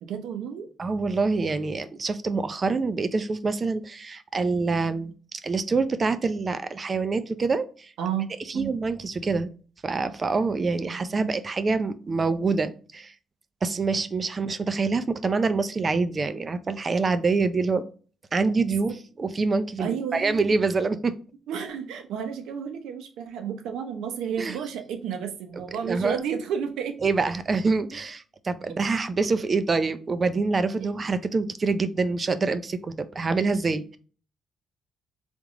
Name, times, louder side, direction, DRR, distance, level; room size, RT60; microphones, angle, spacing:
voice 1, 0.0-0.7 8.0-8.7 10.9-11.3 18.8-19.0 19.8-20.6 21.5-27.1 30.8-30.9, right 8 dB, 85° right, 7 dB, 0.7 m, -32 dB
voice 2, 0.8-5.1 5.4-7.9 8.5-9.5 9.8-13.1 13.6-17.9 18.3-21.1 24.4-24.6 25.8-26.2 27.0-34.0, right 4 dB, 40° right, 12 dB, 0.5 m, -26 dB
3.6 x 3.1 x 3.6 m, 0.39 s
cardioid pair, 75°, 0 cm